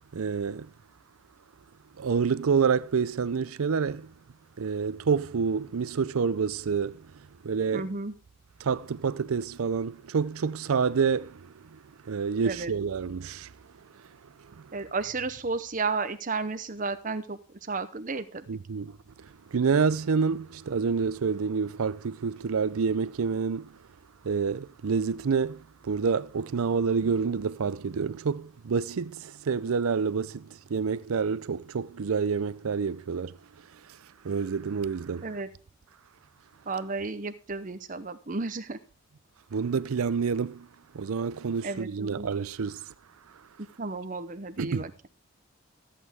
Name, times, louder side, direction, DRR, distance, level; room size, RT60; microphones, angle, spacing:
voice 1, 0.1-0.7 2.0-4.1 4.6-7.1 7.4-7.9 8.6-11.8 12.1-13.5 18.5-19.0 19.5-23.7 24.2-33.4 34.2-35.3 39.5-40.7 40.9-42.8 44.6-44.8, right 5 dB, 80° right, 0.5 m, -28 dB
voice 2, 7.7-8.1 12.4-12.7 14.7-17.4 17.7-18.5 35.2-35.5 36.7-38.8 41.6-42.3 43.8-45.1, right 4 dB, 40° right, 0.7 m, -33 dB
13.5 x 8.4 x 3.5 m
head